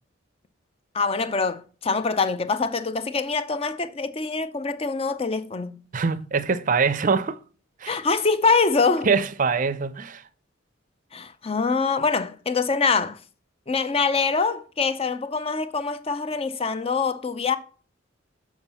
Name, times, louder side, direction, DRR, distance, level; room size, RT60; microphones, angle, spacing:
voice 1, 0.9-5.8 7.9-9.1 11.1-13.2 13.7-17.6, left 4 dB, 30° left, 0.6 m, -24 dB
voice 2, 5.9-7.4 7.8-8.0 9.0-10.2, right 5 dB, 40° right, 0.5 m, -23 dB
7.2 x 4.9 x 5.5 m
head